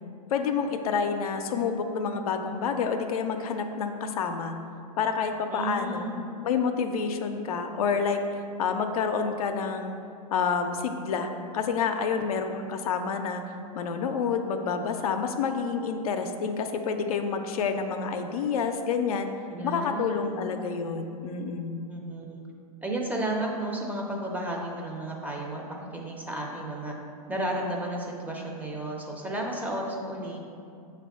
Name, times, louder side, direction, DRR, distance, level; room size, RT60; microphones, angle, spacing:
voice 1, 0.3-4.5 5.0-6.1 6.4-8.2 8.6-10.0 10.3-13.4 13.7-19.3 19.6-21.8, left 6 dB, 70° left, 6 dB, 0.4 m, -28 dB
voice 2, 5.5-6.2 19.5-20.5 21.9-22.4 22.8-26.9 27.3-30.4, right 1 dB, 10° right, -1 dB, 0.5 m, -33 dB
6.6 x 2.2 x 3.5 m, 2.5 s
hypercardioid pair, 105°, 20 cm